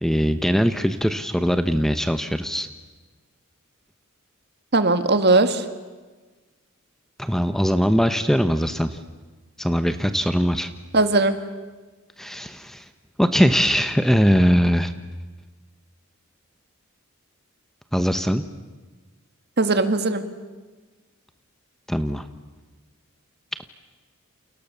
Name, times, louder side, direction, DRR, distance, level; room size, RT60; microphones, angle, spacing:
voice 1, 0.0-2.7 7.2-9.0 9.6-10.7 12.2-12.9 13.2-14.9 17.9-18.4 21.9-22.2, equal, ahead, 10 dB, 0.9 m, -21 dB
voice 2, 4.7-5.6 10.9-11.4 19.6-20.2, right 2 dB, 50° right, 9 dB, 1.9 m, -19 dB
29.5 x 29.0 x 6.9 m, 1.3 s
head